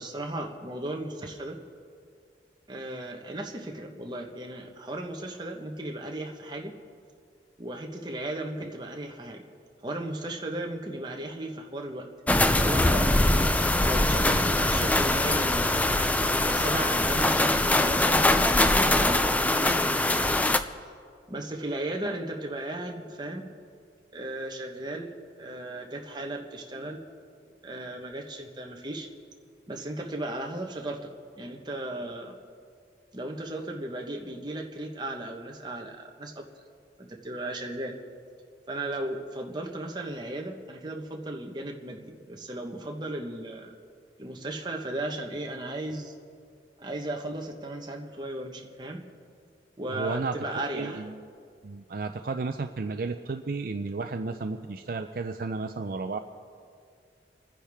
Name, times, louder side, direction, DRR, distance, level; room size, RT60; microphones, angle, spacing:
voice 1, 0.0-1.6 2.7-6.7 7.6-9.4 9.8-12.1 12.5-13.2 13.5-15.8 16.3-20.2 21.3-23.5 24.1-25.1 25.4-27.0 27.6-29.1 29.7-31.1 31.4-32.3 33.1-36.4 37.0-37.9 38.7-43.7 44.2-46.1 46.8-49.0 49.8-51.0, right 1 dB, 25° right, 2 dB, 1.1 m, -36 dB
sound 1, 12.3-20.6, left 1 dB, 10° left, 0.4 m, -23 dB
voice 2, 49.9-50.4 50.7-51.2 51.6-56.2, right 4 dB, 55° right, 7 dB, 0.5 m, -33 dB
30.0 x 10.0 x 3.5 m, 2.3 s
head